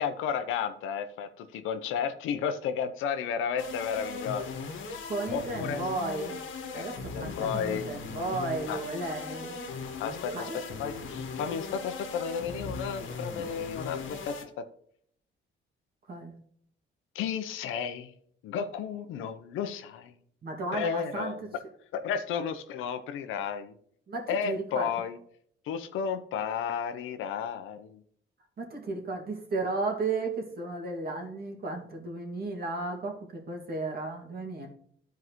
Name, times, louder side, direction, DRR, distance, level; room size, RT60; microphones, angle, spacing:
voice 1, 0.0-4.5 4.9-5.0 5.3-5.8 6.7-7.8 8.7-8.8 10.0-14.7 17.1-18.1 18.4-20.1 20.7-21.4 21.9-23.7 24.3-25.2 25.7-28.0, left 7 dB, 90° left, 9 dB, 0.8 m, -33 dB
sound 1, 3.6-14.4, left 4 dB, 75° left, 1.6 m, -39 dB
voice 2, 5.1-6.4 6.7-9.6 10.3-10.6 16.1-16.4 20.4-21.3 24.1-24.9 28.6-34.7, right 3 dB, 50° right, 1 dB, 2.2 m, -34 dB
13.0 x 4.7 x 3.1 m, 0.63 s
cardioid pair, 90°, 20 cm